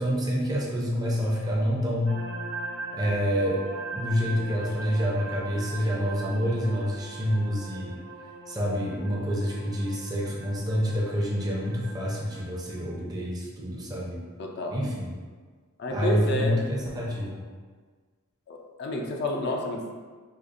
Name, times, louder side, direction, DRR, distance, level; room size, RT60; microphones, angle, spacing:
voice 1, 0.0-2.2 2.9-3.6 3.9-8.0 8.5-14.2 14.7-15.1 15.9-17.4, equal, 20° right, -3 dB, 0.5 m, -27 dB
sound 1, 2.1-12.8, right 3 dB, 65° right, 0.5 m, -40 dB
voice 2, 14.4-14.8 15.8-16.6 18.5-19.9, left 1 dB, 50° left, 2 dB, 0.4 m, -30 dB
4.9 x 2.4 x 2.5 m, 1.5 s
head